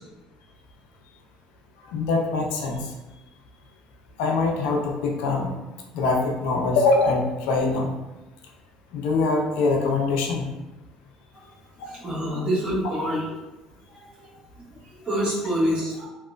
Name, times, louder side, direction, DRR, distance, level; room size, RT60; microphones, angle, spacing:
voice 1, 1.8-2.9 4.2-5.5 5.9-7.9 8.9-10.5 11.8-11.9 12.3-12.4, left 3 dB, 80° left, 1 dB, 0.4 m, -23 dB
voice 2, 11.8-13.3 13.9-14.3 14.6-14.7 14.9-16.1, equal, 45° right, -7 dB, 1.3 m, -27 dB
2.8 x 2.0 x 2.3 m, 1.1 s
hypercardioid pair, 65°, 2 cm